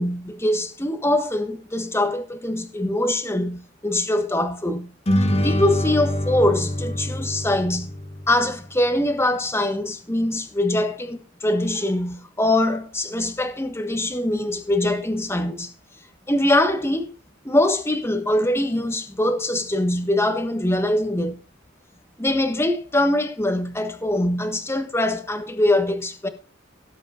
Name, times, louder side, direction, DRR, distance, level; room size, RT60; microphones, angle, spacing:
voice 1, 0.0-4.9 5.2-7.9 8.3-15.7 16.3-17.1 17.4-21.4 22.2-26.3, left 1 dB, 15° left, 1.5 m, -23 dB
sound 1, 5.1-8.7, left 1 dB, 35° left, 1.4 m, -25 dB
18.0 x 8.3 x 2.6 m
head